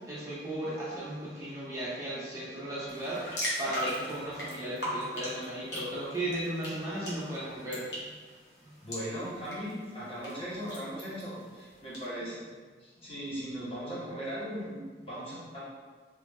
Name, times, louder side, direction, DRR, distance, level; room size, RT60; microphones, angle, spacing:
voice 1, 0.1-8.1 8.6-8.7, right 1 dB, 15° right, -9 dB, 0.7 m, -36 dB
sound 1, 2.9-12.0, equal, 85° left, 1.1 m, -40 dB
voice 2, 8.8-12.3 12.8-15.6, equal, 35° left, -9 dB, 1.1 m, -38 dB
3.1 x 2.5 x 3.5 m, 1.5 s
head